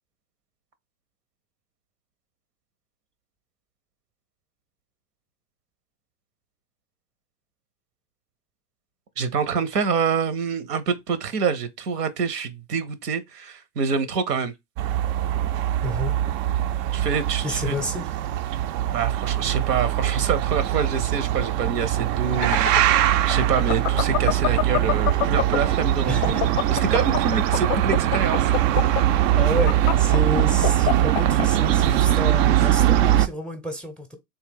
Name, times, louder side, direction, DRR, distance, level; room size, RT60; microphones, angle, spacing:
voice 1, 9.2-14.5 16.9-17.7 18.9-28.5, right 6 dB, 80° right, 0.9 m, -26 dB
sound 1, 14.8-33.3, right 12 dB, 55° right, 0.5 m, -22 dB
voice 2, 15.8-16.2 17.4-18.1 26.1-26.4 29.3-34.2, left 1 dB, ahead, 0.6 m, -30 dB
sound 2, 22.2-25.8 26.1-31.5, left 15 dB, 50° left, 0.5 m, -25 dB
3.5 x 2.3 x 3.6 m
hypercardioid pair, 100°, 47 cm